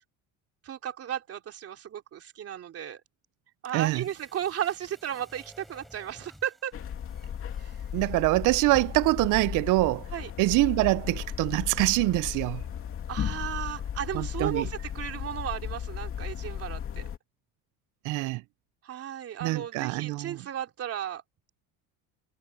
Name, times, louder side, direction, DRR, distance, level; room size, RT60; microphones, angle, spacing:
voice 1, 0.6-3.0 3.6-6.7 7.6-7.8 10.1-10.3 13.1-17.1 18.8-21.2, right 10 dB, 40° right, 3.1 m, -35 dB
voice 2, 3.7-4.0 7.9-10.1 10.4-12.6 14.1-14.7 18.0-18.4 19.4-20.4, right 21 dB, 60° right, 0.6 m, -25 dB
sound 1, 3.8-8.8 9.1-9.2, equal, ahead, 5.8 m, -56 dB
sound 2, 6.7-17.2, left 8 dB, 40° left, 2.8 m, -35 dB
cardioid pair, 130°, 35 cm